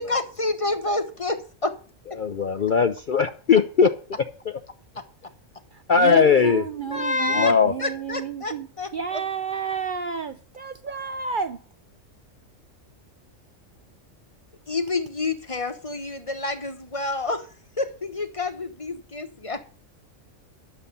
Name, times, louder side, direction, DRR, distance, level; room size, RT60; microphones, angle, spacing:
voice 1, 0.0-1.4 1.6-1.7 6.9-7.5 7.8-8.9 14.7-17.5 17.8-19.6, left 3 dB, 25° left, 1.2 m, -28 dB
voice 2, 2.2-3.9 5.9-6.7 7.3-7.7, left 6 dB, 50° left, 0.7 m, -19 dB
voice 3, 5.9-8.7 8.9-11.6, right 6 dB, 50° right, 0.7 m, -31 dB
11.5 x 7.2 x 6.7 m
omnidirectional pair, 1.3 m